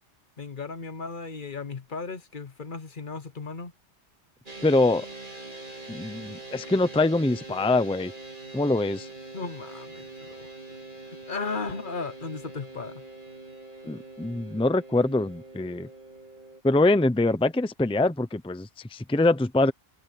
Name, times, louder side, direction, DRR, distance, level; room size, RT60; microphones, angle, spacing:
voice 1, 0.4-3.7 9.3-10.5 11.3-13.0, left 4 dB, 50° left, 1.1 m, -35 dB
sound 1, 4.5-16.6, right 2 dB, 45° right, 4.6 m, -43 dB
voice 2, 4.6-5.1 5.9-8.1 8.5-9.1 13.9-15.9 16.6-19.7, left 2 dB, 5° left, 0.7 m, -24 dB
omnidirectional pair, 1.2 m